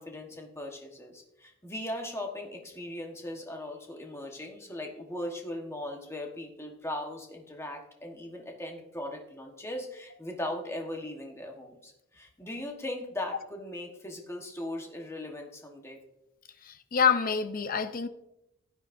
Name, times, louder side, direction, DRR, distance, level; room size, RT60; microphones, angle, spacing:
voice 1, 0.0-16.0, left 1 dB, 10° left, 1.3 m, -39 dB
voice 2, 16.6-18.1, left 6 dB, 40° left, 0.6 m, -27 dB
15.5 x 9.5 x 2.7 m
head